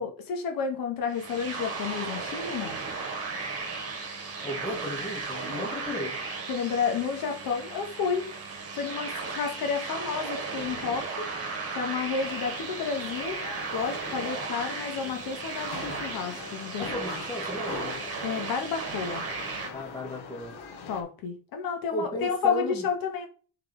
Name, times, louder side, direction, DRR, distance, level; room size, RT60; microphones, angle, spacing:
voice 1, 0.0-2.8 6.5-8.3 8.7-11.3 11.7-16.8 18.2-19.2 20.9-23.3, left 6 dB, 60° left, 1.6 m, -31 dB
sound 1, 1.1-19.7, right 4 dB, 40° right, 2.1 m, -35 dB
voice 2, 4.4-6.2 16.8-18.0 19.7-20.6 21.9-22.9, left 1 dB, 10° left, 1.9 m, -35 dB
sound 2, 12.2-21.0, left 4 dB, 80° left, 1.8 m, -43 dB
7.2 x 4.7 x 3.4 m
cardioid pair, 170°, 38 cm